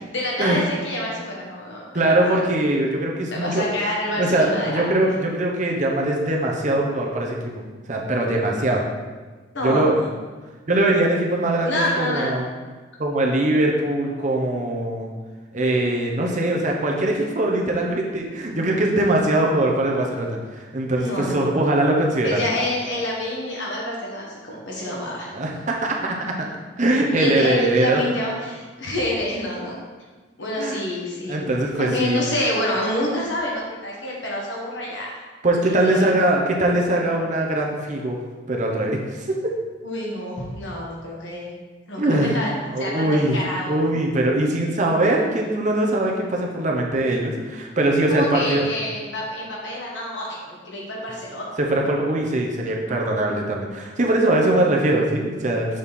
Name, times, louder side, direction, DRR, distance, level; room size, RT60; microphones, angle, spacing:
voice 1, 0.1-2.4 3.3-4.9 9.5-9.8 11.6-12.3 21.0-21.6 22.2-25.3 27.2-29.8 30.4-31.4 31.8-35.2 35.6-36.1 39.8-41.6 41.9-42.5 42.8-43.7 48.1-51.5, left 1 dB, 75° left, -3 dB, 1.5 m, -27 dB
voice 2, 1.9-3.6 4.2-8.8 9.6-10.0 10.7-12.5 13.0-15.1 15.5-22.5 25.3-26.5 26.8-28.0 30.6-30.8 31.3-32.2 35.4-38.2 38.5-39.5 42.0-42.4 42.7-43.4 43.7-48.7 51.6-55.7, right 1 dB, 40° right, 0 dB, 0.7 m, -21 dB
6.4 x 4.2 x 3.6 m, 1.3 s
head